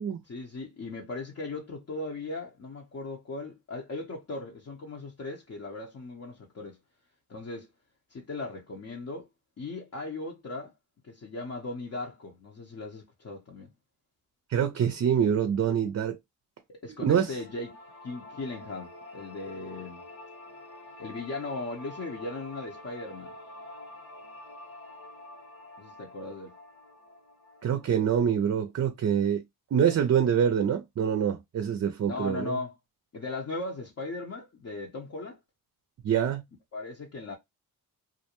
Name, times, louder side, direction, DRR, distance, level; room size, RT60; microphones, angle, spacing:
voice 1, 0.2-6.8 7.3-7.7 8.1-9.3 9.6-10.7 11.0-13.7 16.7-17.8 18.0-20.0 21.0-23.4 25.8-26.5 32.1-32.7 33.1-35.4 36.7-37.4, left 2 dB, 40° left, 0.7 m, -38 dB
voice 2, 14.5-16.2 17.0-17.3 27.6-29.4 29.7-32.6 36.0-36.4, right 8 dB, 45° right, 0.5 m, -25 dB
sound 1, 17.2-28.3, left 2 dB, 80° left, 1.1 m, -47 dB
2.4 x 2.1 x 2.8 m
cardioid pair, 60°, 38 cm